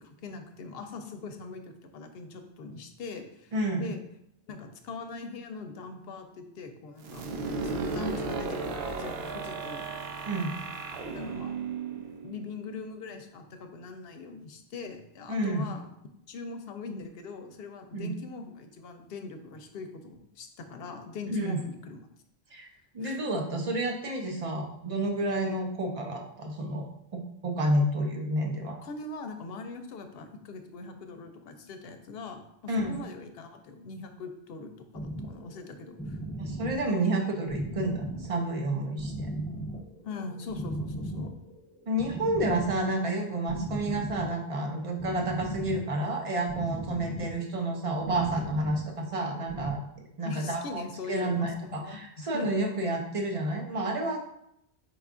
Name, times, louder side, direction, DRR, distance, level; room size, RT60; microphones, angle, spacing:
voice 1, 0.0-4.0 4.5-7.2 7.6-9.9 11.1-11.5 11.9-15.9 16.3-22.0 23.0-23.2 28.8-36.2 40.0-41.3 50.2-52.5, left 4 dB, 70° left, 6 dB, 0.8 m, -41 dB
voice 2, 3.5-3.8 10.2-10.6 15.3-15.7 17.9-18.1 21.3-21.6 22.5-22.7 22.9-26.9 27.4-28.8 32.7-33.0 36.4-39.3 41.9-49.8 50.2-50.8 51.1-54.2, right 1 dB, 40° right, 2 dB, 0.6 m, -30 dB
sound 1, 7.0-12.7, right 4 dB, 75° right, 0.8 m, -35 dB
sound 2, 34.9-49.7, right 1 dB, 15° left, 0.4 m, -38 dB
5.0 x 2.3 x 3.6 m, 0.76 s
omnidirectional pair, 1.1 m